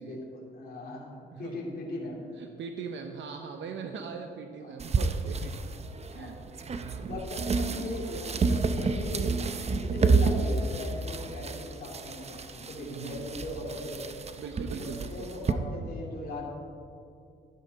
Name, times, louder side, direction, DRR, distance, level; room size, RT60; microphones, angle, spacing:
voice 1, 0.0-2.2 3.8-4.0 4.6-4.8 6.1-6.3 7.0-14.1 14.7-16.4, left 1 dB, 50° left, -4 dB, 2.8 m, -39 dB
voice 2, 2.4-5.6 6.1-6.4 6.7-7.1 12.8-13.3 14.4-15.3, right 6 dB, 70° right, 5 dB, 0.8 m, -40 dB
sound 1, 4.8-15.5, right 4 dB, 30° right, 0.7 m, -30 dB
12.0 x 10.5 x 4.0 m, 2.5 s
cardioid pair, 90°, 20 cm